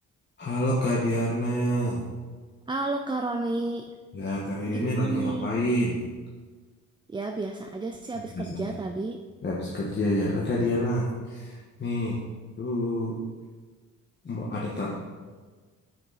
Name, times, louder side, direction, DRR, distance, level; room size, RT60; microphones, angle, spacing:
voice 1, 0.4-2.0 4.1-6.0 8.3-8.7 9.4-12.2 12.6-13.2 14.2-15.0, left 1 dB, 35° left, -5 dB, 1.5 m, -28 dB
voice 2, 2.7-3.8 4.7-5.5 7.1-9.2, right 2 dB, 15° right, 4 dB, 0.4 m, -31 dB
8.8 x 6.5 x 4.2 m, 1.4 s
cardioid pair, 90°, 30 cm